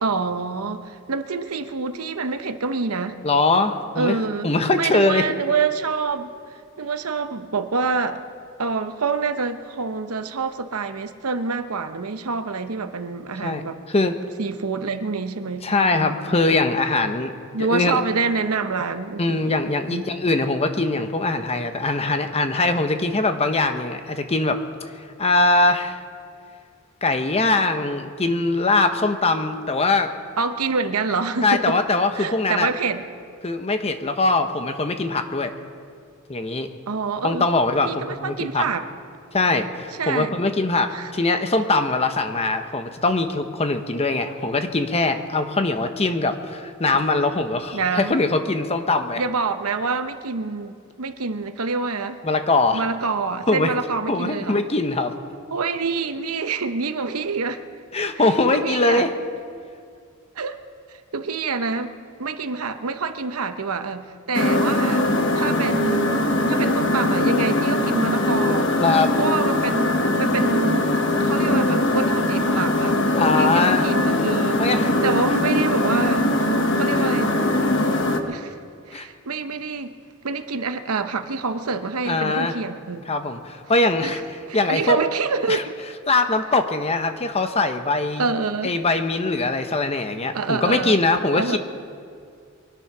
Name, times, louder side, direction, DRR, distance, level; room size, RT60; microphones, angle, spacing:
voice 1, 0.0-3.2 4.0-4.5 4.8-6.3 6.8-8.2 8.6-13.8 14.4-16.4 17.5-19.6 19.9-20.0 30.4-31.8 32.2-33.0 36.9-37.5 37.8-38.8 40.0-40.3 40.9-41.1 47.7-48.1 49.2-52.2 52.7-54.6 55.5-57.6 58.5-59.1 60.4-60.6 60.9-61.9 62.2-68.7 69.2-70.9 71.2-73.0 73.3-74.6 75.0-76.3 76.7-77.4 78.3-78.6 78.9-80.0 80.2-83.0 84.0-84.2 84.5-85.6 88.2-88.7 90.3-91.0 91.4-91.6, right 4 dB, 90° right, 9 dB, 0.9 m, -26 dB
voice 2, 3.2-4.1 4.4-5.2 13.4-14.2 15.6-17.3 17.6-18.0 19.2-24.6 25.2-26.0 27.0-30.1 31.4-32.7 33.4-35.5 36.3-36.7 37.2-38.6 39.3-49.2 52.2-52.8 53.5-53.7 54.1-55.1 57.9-59.1 68.8-69.1 73.2-73.8 74.6-74.9 78.9-79.1 82.1-82.6 83.1-84.2 84.5-85.0 85.5-85.6 86.1-88.3 88.6-91.6, left 3 dB, 30° left, 7 dB, 0.9 m, -22 dB
sound 1, 64.3-78.2, left 1 dB, 60° left, 1.2 m, -21 dB
23.5 x 10.0 x 6.1 m, 2.3 s
head